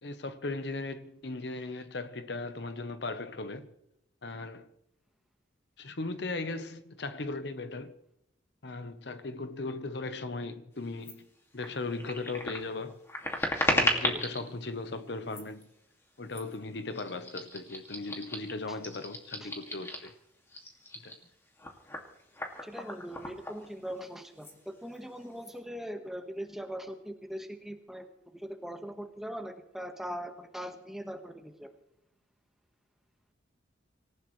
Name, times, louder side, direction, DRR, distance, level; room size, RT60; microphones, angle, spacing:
voice 1, 0.0-3.7 4.2-4.7 5.8-7.9 8.6-11.2 11.5-13.0 13.7-15.7 16.2-20.1 21.0-21.2, left 3 dB, 60° left, 0.9 m, -37 dB
sound 1, 11.0-11.1 11.6-14.4 15.2-15.6 16.3-16.6 16.9-20.1 20.5-24.1 24.4-24.6 24.9-25.5, left 1 dB, 15° left, 2.2 m, -35 dB
voice 2, 22.6-28.1 28.3-31.7, equal, ahead, 1.3 m, -41 dB
26.0 x 15.5 x 3.2 m
head